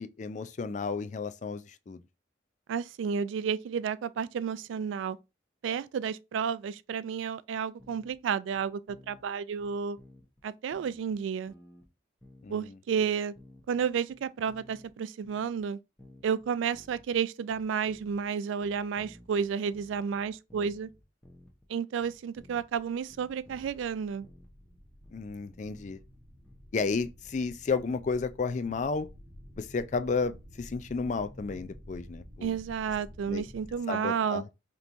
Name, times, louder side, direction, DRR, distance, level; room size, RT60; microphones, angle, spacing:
voice 1, 0.0-2.0 12.4-12.8 25.1-26.0 26.7-29.1 29.6-32.6 33.3-33.4 33.9-34.5, left 4 dB, 40° left, 0.3 m, -32 dB
voice 2, 2.7-5.2 5.6-10.0 10.4-11.5 12.5-13.3 13.7-15.8 16.2-20.9 21.7-24.3 32.4-34.4, right 7 dB, 90° right, 0.3 m, -31 dB
sound 1, 7.8-8.2 8.5-9.3 9.6-10.4 10.7-11.9 12.2-12.7 13.0-14.9 15.2-15.6 16.0-17.2 17.5-18.3 18.6-21.7 22.0-22.8 23.1-23.9 24.2-26.9, left 1 dB, 5° left, 0.9 m, -56 dB
sound 2, 22.6-33.8, equal, 40° right, 1.0 m, -51 dB
5.2 x 2.9 x 2.5 m
head